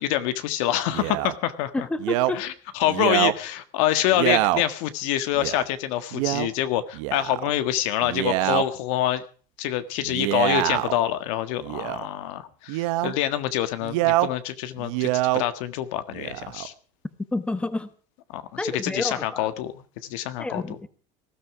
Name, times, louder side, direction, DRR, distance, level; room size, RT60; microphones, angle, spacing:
voice 1, 0.0-1.9 2.3-9.2 9.6-16.7 18.3-20.8, left 12 dB, 80° left, 11 dB, 1.7 m, -26 dB
Male speech man speaking, 0.9-1.3 2.0-2.3 2.9-3.4 4.1-4.6 5.4-5.6 6.1-6.5 6.9-7.5 8.0-8.6 10.0-11.0 11.6-12.1 12.7-13.1 13.8-14.3 14.8-15.4 16.1-16.7, right 18 dB, 85° right, 1.1 m, -25 dB
voice 2, 1.7-2.5 17.3-17.9 18.6-19.5 20.4-20.9, left 2 dB, 5° left, 12 dB, 1.1 m, -29 dB
19.0 x 13.0 x 4.9 m, 0.41 s
cardioid pair, 145°, 17 cm